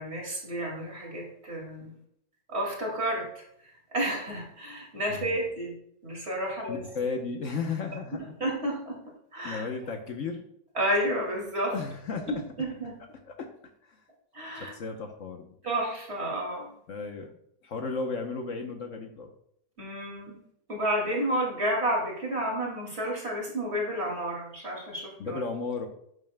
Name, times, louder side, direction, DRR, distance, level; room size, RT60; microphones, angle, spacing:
voice 1, 0.0-1.9 2.5-3.4 3.9-5.7 6.0-6.8 8.1-9.0 9.3-9.6 10.7-11.7 12.3-12.9 14.3-14.7 15.6-16.7 19.8-20.4 20.7-25.4, right 1 dB, 45° right, -2 dB, 2.6 m, -31 dB
voice 2, 6.5-8.4 9.4-10.4 11.7-12.4 13.3-13.5 13.8-14.0 14.5-15.5 16.9-17.4 17.6-19.3 25.2-25.9, left 4 dB, 60° left, 4 dB, 1.1 m, -34 dB
10.5 x 7.3 x 2.2 m, 0.72 s
omnidirectional pair, 1.6 m